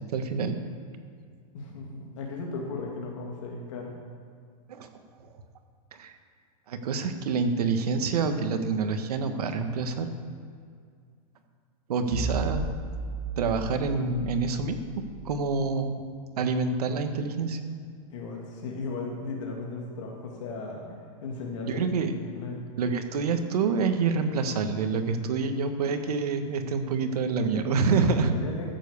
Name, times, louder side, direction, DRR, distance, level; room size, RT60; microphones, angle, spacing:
voice 1, 0.1-0.6 4.7-4.9 5.2-5.3 5.9-6.1 6.7-10.1 11.9-12.6 13.4-14.8 15.2-16.0 16.4-17.6 21.7-22.1 22.8-28.3, right 4 dB, 85° right, 7 dB, 1.5 m, -27 dB
voice 2, 1.5-4.0 18.1-22.6 28.2-28.7, left 3 dB, 55° left, -1 dB, 2.0 m, -36 dB
sound 1, 12.1-15.5, right 2 dB, 15° left, 1.8 m, -35 dB
14.5 x 7.6 x 7.1 m, 2.2 s
supercardioid pair, 170°, 19 cm